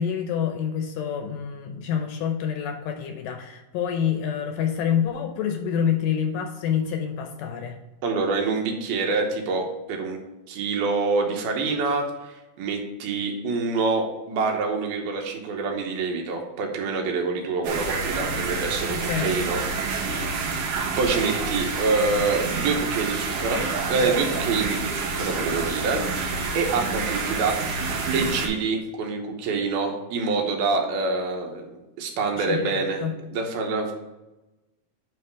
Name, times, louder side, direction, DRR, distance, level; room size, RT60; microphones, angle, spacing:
voice 1, 0.0-7.8 18.9-19.4 32.3-33.1, left 8 dB, 75° left, 5 dB, 2.1 m, -27 dB
voice 2, 8.0-10.2 10.5-19.6 20.5-27.6 28.1-33.0 33.3-33.9, right 4 dB, 85° right, 2 dB, 3.0 m, -26 dB
sound 1, 17.6-28.5, right 4 dB, 65° right, 1.5 m, -28 dB
9.5 x 3.2 x 4.6 m, 1.0 s
omnidirectional pair, 4.2 m